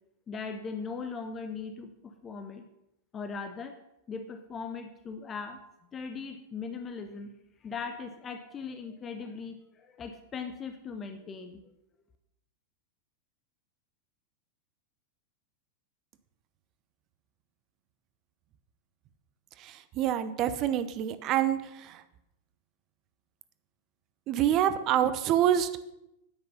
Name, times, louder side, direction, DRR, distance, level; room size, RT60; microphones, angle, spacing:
voice 1, 0.3-2.7 3.1-3.8 4.1-5.6 5.9-7.3 7.6-11.6, left 5 dB, 25° left, 8 dB, 0.8 m, -39 dB
voice 2, 19.6-21.6 24.3-25.9, right 11 dB, 35° right, 12 dB, 0.8 m, -26 dB
9.5 x 9.0 x 5.6 m, 0.87 s
figure-of-eight pair, 90°, 0 cm